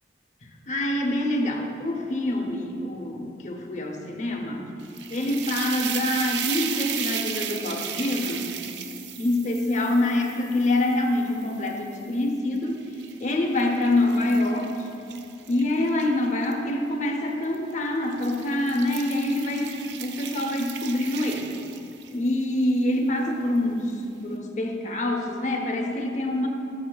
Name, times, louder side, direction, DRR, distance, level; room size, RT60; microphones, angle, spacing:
voice 1, 0.7-4.7 5.1-8.6 9.2-12.9 13.2-14.9 15.5-21.6 22.1-23.9 24.2-26.5, left 1 dB, 40° left, 3 dB, 0.8 m, -26 dB
sound 1, 4.8-12.0 12.6-16.5 17.4-17.7 18.1-22.3, right 8 dB, 85° right, 0.5 m, -35 dB
13.0 x 7.0 x 2.3 m, 2.6 s
head